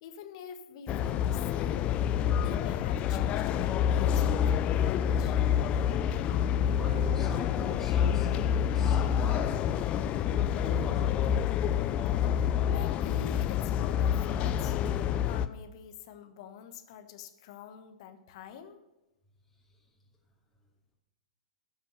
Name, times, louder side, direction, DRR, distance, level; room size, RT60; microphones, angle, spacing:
voice 1, 0.0-2.0 2.3-5.4 12.7-14.8 15.3-18.8, left 8 dB, 50° left, 7 dB, 1.3 m, -46 dB
sound 1, 0.9-15.5, left 9 dB, 30° left, 0.5 m, -27 dB
voice 2, 6.1-8.3 8.7-9.7 10.6-11.2, left 2 dB, ahead, -7 dB, 2.7 m, -42 dB
13.0 x 5.8 x 6.6 m, 1.0 s
figure-of-eight pair, 105°, 4 cm